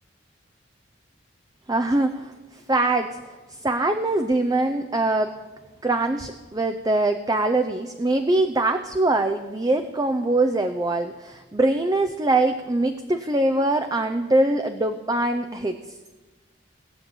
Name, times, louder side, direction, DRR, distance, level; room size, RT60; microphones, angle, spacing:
voice 1, 1.7-3.2 3.5-5.3 5.8-15.8, right 2 dB, 20° right, 7 dB, 0.6 m, -23 dB
18.5 x 7.1 x 9.9 m, 1.2 s
head